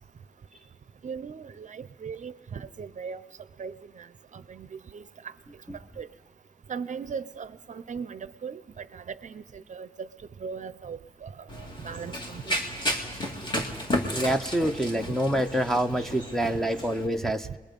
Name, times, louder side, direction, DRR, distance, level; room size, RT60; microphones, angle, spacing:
voice 1, 1.0-3.2 3.6-4.1 4.3-5.0 6.0-6.1 6.7-10.1 10.4-11.3 11.6-12.5, right 6 dB, 55° right, 14 dB, 0.6 m, -38 dB
Run, 11.5-17.1, equal, 30° left, 2.2 m, -33 dB
voice 2, 14.2-17.5, right 1 dB, ahead, 3 dB, 0.7 m, -26 dB
28.5 x 21.5 x 5.3 m, 1.3 s
wide cardioid pair, 175°, 15 cm